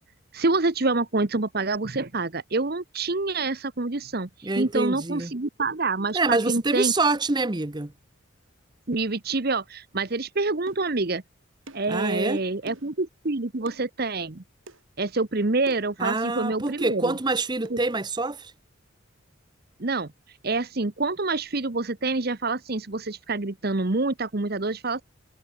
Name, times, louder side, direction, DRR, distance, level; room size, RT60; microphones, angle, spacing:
voice 1, 0.3-4.3 4.6-6.9 8.9-11.2 11.7-14.4 15.0-17.1 17.7-17.8 19.8-20.1 20.4-25.0, right 3 dB, 50° right, 1.1 m, -27 dB
voice 2, 4.4-5.3 6.1-7.9 11.9-12.4 16.0-18.5, right 3 dB, 20° right, 0.8 m, -26 dB
sound 1, 10.7-10.9 11.7-11.9 12.7-13.0 13.7-13.9 14.7-14.8 15.7-16.0 16.7-16.8 17.7-17.8, right 2 dB, 75° right, 5.0 m, -44 dB
head